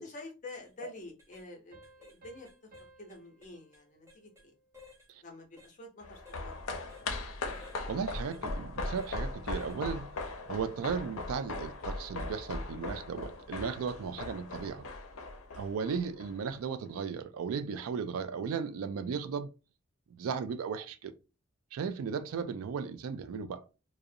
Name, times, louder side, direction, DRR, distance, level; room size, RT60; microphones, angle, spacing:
voice 1, 0.0-2.7 3.0-4.5 5.2-6.7 16.0-16.1, left 2 dB, 35° left, 0.6 m, -48 dB
sound 1, 0.6-0.7 1.2-1.5 1.8-2.2 2.4-4.5 4.7-5.1 5.6-5.7 6.3-6.4 6.9-7.1 7.5-7.8 8.3-8.4 9.0-9.2 9.6-9.8 10.2-10.4, left 3 dB, 10° right, 0.5 m, -57 dB
sound 2, 1.7-5.0, right 2 dB, 40° right, 0.9 m, -60 dB
Wlk fst w echoes, 6.0-16.6 16.9-17.0, left 2 dB, 80° left, 0.5 m, -39 dB
voice 2, 7.9-10.1 10.5-14.8 15.6-19.5 20.1-21.1 21.7-23.6, right 6 dB, 85° right, 0.3 m, -36 dB
2.4 x 2.0 x 2.6 m
head